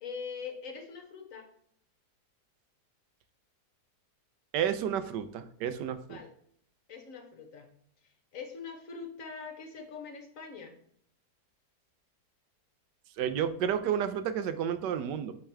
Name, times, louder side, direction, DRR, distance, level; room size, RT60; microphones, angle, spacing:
voice 1, 0.0-1.5 6.1-6.3 6.9-7.7 8.3-10.8, left 5 dB, 55° left, 5 dB, 1.2 m, -43 dB
voice 2, 4.5-6.2 13.2-15.3, right 9 dB, 90° right, 11 dB, 1.3 m, -31 dB
8.7 x 3.7 x 3.4 m, 0.66 s
omnidirectional pair, 1.8 m